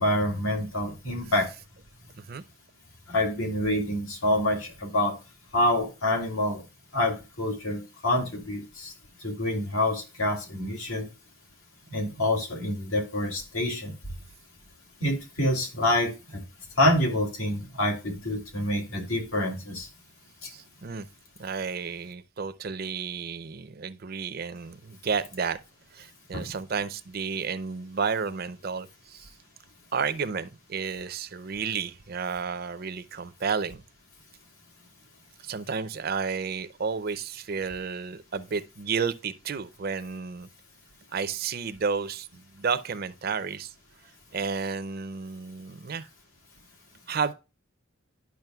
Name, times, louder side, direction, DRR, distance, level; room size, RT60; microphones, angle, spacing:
voice 1, 0.0-1.5 3.1-5.1 5.5-6.6 6.9-8.9 9.2-11.1 11.9-13.9 15.0-16.4 16.8-19.9 20.4-20.5 26.3-26.4, left 1 dB, 85° left, 2.5 m, -27 dB
voice 2, 20.5-21.1 21.4-25.6 25.9-29.3 29.9-33.8 35.4-40.5 41.1-43.7 44.3-46.1 47.1-47.3, right 5 dB, 50° right, 0.5 m, -32 dB
10.5 x 6.1 x 2.3 m
head